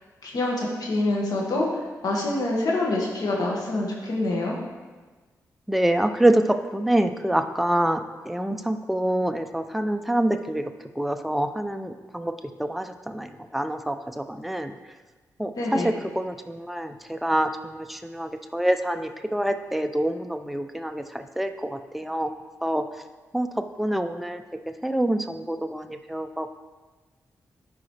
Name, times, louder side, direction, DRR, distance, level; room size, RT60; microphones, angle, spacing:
voice 1, 0.2-4.6 15.5-15.9, left 2 dB, 70° left, -2 dB, 2.0 m, -26 dB
voice 2, 5.7-10.7 11.0-12.3 12.6-14.7 15.4-22.8 23.3-23.5 23.8-24.4 24.8-26.5, right 1 dB, ahead, 7 dB, 0.6 m, -26 dB
12.5 x 4.8 x 3.4 m, 1.3 s
cardioid pair, 65°, 7 cm